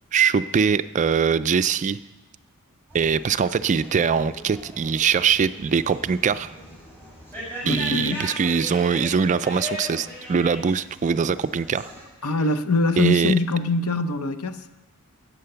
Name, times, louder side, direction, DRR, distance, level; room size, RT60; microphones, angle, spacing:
voice 1, 0.1-2.0 2.9-6.5 7.7-11.9 13.0-13.3, right 6 dB, 35° right, 0.3 m, -22 dB
sound 1, 2.9-12.0, equal, 10° left, 5.9 m, -38 dB
voice 2, 7.6-8.3 12.2-14.6, left 2 dB, 75° left, 0.8 m, -23 dB
14.5 x 8.9 x 6.8 m
head